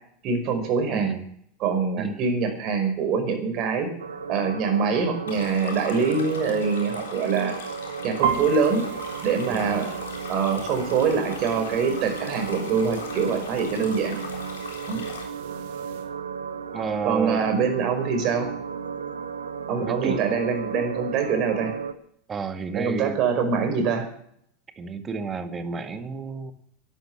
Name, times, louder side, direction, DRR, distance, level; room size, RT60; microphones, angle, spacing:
voice 1, 0.2-1.1 1.6-3.9 4.3-7.6 8.0-8.8 9.2-9.9 10.3-14.2 14.9-15.0 17.0-18.5 19.7-21.7 22.7-24.1, right 5 dB, 45° right, 6 dB, 5.2 m, -24 dB
voice 2, 0.9-1.2 2.0-2.2 9.5-9.8 16.7-17.5 19.8-20.3 22.3-23.2 24.8-26.5, right 4 dB, 25° right, 9 dB, 2.0 m, -31 dB
sound 1, 4.0-21.9, right 6 dB, 85° right, 1.1 m, -35 dB
Stream, 5.3-15.2, left 6 dB, 80° left, 3.7 m, -40 dB
sound 2, 8.2-16.0, right 8 dB, 65° right, 2.1 m, -36 dB
12.0 x 11.5 x 7.9 m, 0.66 s
hypercardioid pair, 90°, 0 cm